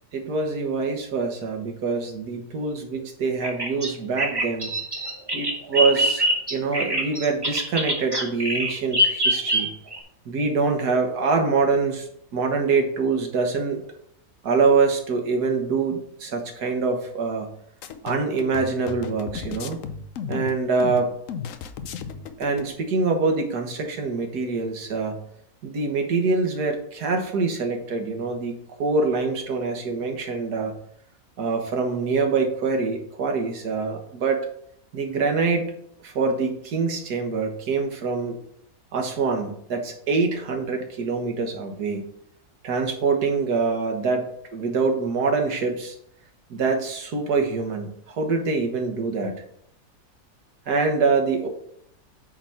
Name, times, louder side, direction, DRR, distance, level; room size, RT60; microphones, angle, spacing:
voice 1, 0.1-4.7 5.3-6.2 6.5-9.7 10.3-13.8 14.4-17.5 18.0-19.8 20.3-21.1 22.4-25.2 25.6-30.7 31.4-34.4 34.9-35.7 36.0-38.4 38.9-42.0 42.6-46.0 46.5-49.3 50.7-51.5, right 4 dB, 70° right, 4 dB, 1.9 m, -25 dB
Bird vocalization bird call bird song, 3.4-10.0, equal, 15° right, 1.0 m, -24 dB
sound 1, 17.8-22.7, left 7 dB, 60° left, 0.9 m, -34 dB
8.7 x 4.1 x 5.8 m, 0.69 s
omnidirectional pair, 1.8 m